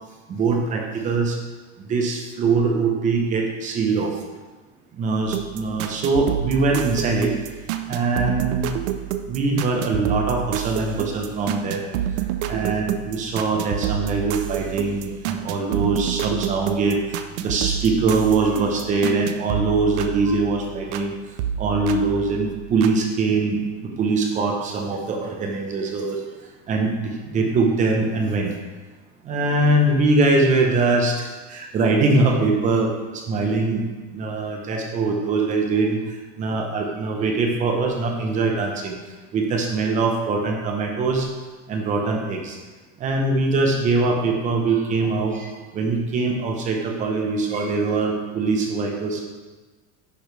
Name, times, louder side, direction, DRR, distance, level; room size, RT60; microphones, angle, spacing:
voice 1, 0.3-1.4 1.9-4.2 5.0-7.3 7.9-8.7 9.3-11.8 12.5-17.0 17.4-21.1 21.6-26.2 26.7-28.5 29.2-31.2 31.5-33.8 34.1-36.0 36.4-38.9 39.3-41.3 41.7-42.6 43.0-49.2, right 3 dB, 20° right, 2 dB, 0.8 m, -22 dB
sound 1, 5.3-21.1 21.4-22.9, right 11 dB, 60° right, 0.7 m, -29 dB
10.5 x 6.3 x 3.4 m, 1.3 s
supercardioid pair, 175°, 39 cm